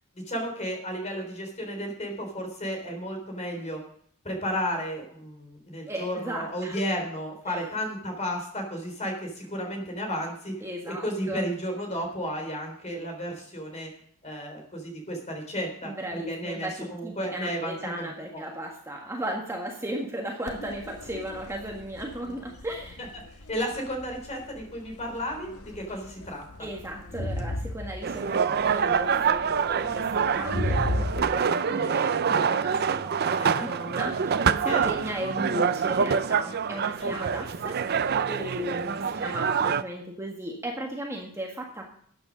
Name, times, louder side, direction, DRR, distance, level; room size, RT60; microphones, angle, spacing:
voice 1, 0.1-3.8 4.2-10.5 10.8-13.9 14.2-18.4 23.5-26.5 33.4-33.7 34.4-34.9 37.0-37.1, equal, 30° left, 3 dB, 3.9 m, -33 dB
voice 2, 5.9-6.8 7.5-7.7 10.6-11.5 15.8-23.0 26.6-41.9, equal, 10° right, 0 dB, 1.6 m, -36 dB
Crowd, 20.5-31.2, left 1 dB, 80° left, 1.5 m, -36 dB
sound 1, 28.0-39.8, right 6 dB, 45° right, 0.5 m, -26 dB
13.0 x 9.3 x 5.2 m, 0.62 s
head